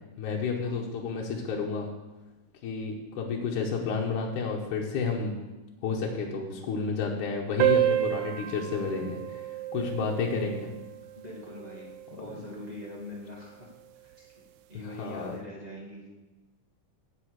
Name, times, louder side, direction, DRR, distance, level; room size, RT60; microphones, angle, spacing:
voice 1, 0.2-1.9 2.6-5.4 5.8-9.5 9.7-10.7 12.1-12.4 14.8-15.4, left 5 dB, 70° left, -1 dB, 2.5 m, -31 dB
sound 1, 7.6-12.6, right 13 dB, 75° right, 2.1 m, -30 dB
voice 2, 11.1-13.7 14.0-14.4 14.7-16.0, left 1 dB, 15° right, -3 dB, 1.7 m, -43 dB
8.1 x 7.5 x 8.0 m, 1.1 s
omnidirectional pair, 3.8 m